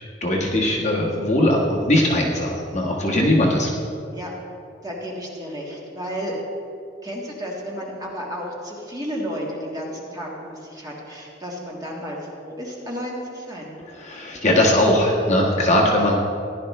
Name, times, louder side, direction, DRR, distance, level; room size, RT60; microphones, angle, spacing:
voice 1, 0.2-3.7 13.9-16.2, left 1 dB, 35° left, -3 dB, 1.5 m, -20 dB
voice 2, 4.8-6.4 7.0-13.7, equal, 20° right, -3 dB, 1.8 m, -32 dB
15.5 x 11.0 x 3.2 m, 2.5 s
head